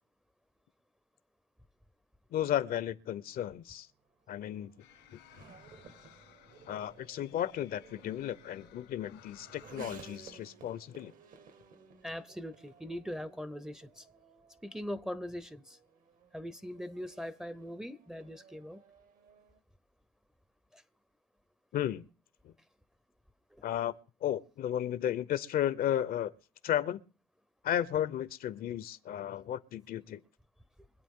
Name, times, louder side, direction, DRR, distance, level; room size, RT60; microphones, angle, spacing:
voice 1, 2.3-3.9 4.3-4.7 5.1-5.2 6.7-11.1 21.7-22.0 22.4-22.5 23.6-23.9 24.2-26.3 26.6-27.0 27.6-30.2, left 11 dB, 60° left, 0.7 m, -34 dB
Race car auto racing / Accelerating revving vroom, 3.3-19.6, right 5 dB, 55° right, 1.4 m, -57 dB
sound 1, 4.8-10.1, left 12 dB, 90° left, 1.9 m, -59 dB
voice 2, 12.0-14.1 14.6-15.8 16.3-18.8 20.7-20.8 23.5-23.6, equal, 5° right, 0.7 m, -41 dB
24.5 x 8.3 x 3.7 m
cardioid pair, 110°, 17 cm